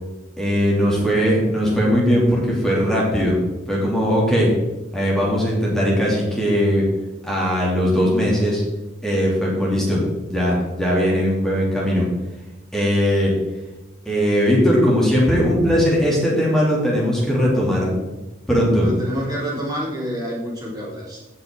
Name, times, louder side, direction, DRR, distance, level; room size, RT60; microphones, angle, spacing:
voice 1, 0.4-3.4 3.7-4.5 4.9-6.8 7.2-8.6 9.0-10.0 10.3-12.0 12.7-13.3 14.1-17.9 18.5-18.9, equal, 5° left, -5 dB, 2.8 m, -19 dB
voice 2, 18.8-21.2, equal, 20° right, -5 dB, 3.7 m, -27 dB
15.5 x 6.2 x 3.8 m, 1.1 s
head